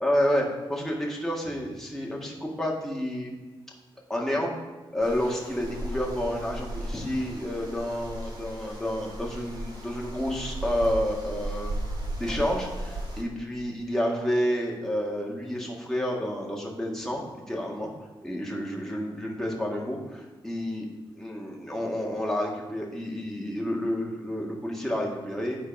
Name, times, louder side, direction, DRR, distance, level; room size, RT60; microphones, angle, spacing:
voice 1, 0.0-3.3 4.1-4.5 4.9-11.9 12.2-17.9 18.2-20.9 21.2-25.6, equal, 5° left, -2 dB, 1.8 m, -30 dB
sound 1, 5.0-13.2, right 1 dB, 50° right, 1.9 m, -36 dB
9.5 x 4.3 x 5.3 m, 1.2 s
cardioid pair, 80°, 9 cm